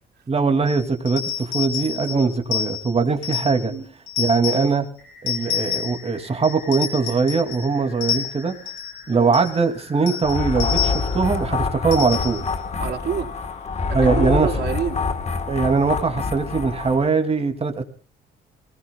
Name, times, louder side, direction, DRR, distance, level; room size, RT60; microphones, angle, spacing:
voice 1, 0.3-3.7 4.2-4.8 5.2-8.5 9.1-12.5 13.9-14.5 15.5-17.8, right 4 dB, 30° right, 6 dB, 2.6 m, -21 dB
sound 1, 0.7-3.7 4.1-4.8 5.3-6.1 6.4-7.7 8.0-9.0 9.3-9.6 10.1-11.2 11.9-12.5, left 9 dB, 90° left, 4.9 m, -29 dB
voice 2, 2.1-2.4 3.7-3.9 4.5-4.7 9.1-9.3 12.8-13.3 14.0-15.0, right 7 dB, 60° right, -3 dB, 4.0 m, -28 dB
sound 2, 5.0-14.2, left 5 dB, 70° left, 7.2 m, -45 dB
sound 3, 10.2-17.1, left 4 dB, 35° left, 1.4 m, -26 dB
24.5 x 18.5 x 2.3 m, 0.42 s
cardioid pair, 85°, 19 cm